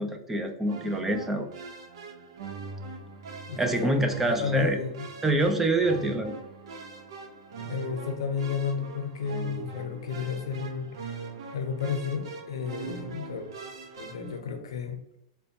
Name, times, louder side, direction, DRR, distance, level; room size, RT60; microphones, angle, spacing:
voice 1, 0.0-1.5 3.6-4.8 5.2-6.3, right 2 dB, 10° right, 5 dB, 0.4 m, -26 dB
sound 1, 0.7-14.4, right 4 dB, 70° right, 0.6 m, -42 dB
voice 2, 3.5-4.0 4.2-5.1 7.6-11.1 11.5-13.5 14.0-15.0, left 6 dB, 90° left, 6 dB, 0.6 m, -32 dB
4.2 x 2.2 x 2.7 m, 0.84 s
hypercardioid pair, 135°, 3 cm